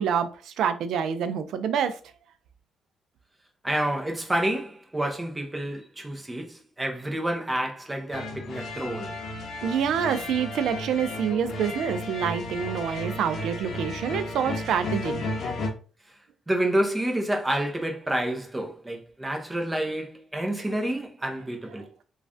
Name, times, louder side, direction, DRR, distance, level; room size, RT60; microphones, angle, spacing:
voice 1, 0.0-2.0 9.6-15.2, right 7 dB, 75° right, 0.4 m, -27 dB
voice 2, 3.6-9.1 16.5-21.9, right 1 dB, 15° right, 0.7 m, -29 dB
sound 1, 8.1-15.7, left 2 dB, 60° left, 0.7 m, -34 dB
3.1 x 2.3 x 2.5 m
cardioid pair, 90°, 0 cm